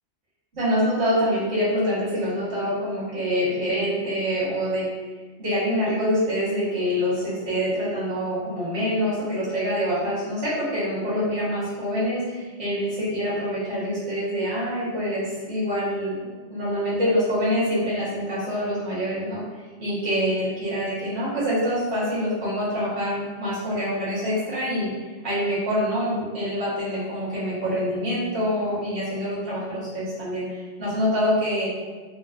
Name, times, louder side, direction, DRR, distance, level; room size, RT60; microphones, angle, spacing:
voice 1, 0.5-4.9 5.4-16.1 16.5-19.4 19.8-24.9 25.2-31.7, equal, 65° right, -10 dB, 1.7 m, -25 dB
6.1 x 2.1 x 2.5 m, 1.4 s
omnidirectional pair, 1.2 m